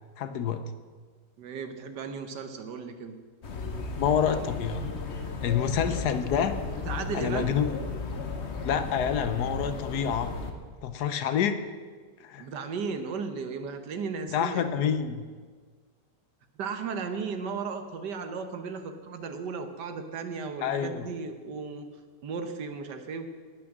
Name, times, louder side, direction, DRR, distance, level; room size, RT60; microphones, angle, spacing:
voice 1, 0.2-0.6 4.0-4.8 5.4-6.6 7.1-7.8 8.6-10.3 10.8-11.6 12.2-12.5 14.3-15.2 20.6-21.0, left 8 dB, 70° left, 10 dB, 1.3 m, -27 dB
voice 2, 1.4-3.2 6.8-7.5 12.4-14.9 16.6-21.9 22.2-23.3, right 5 dB, 80° right, 7 dB, 1.7 m, -35 dB
sound 1, 3.4-10.5, left 4 dB, 45° left, 1.2 m, -35 dB
18.5 x 6.2 x 7.3 m, 1.5 s
omnidirectional pair, 1.8 m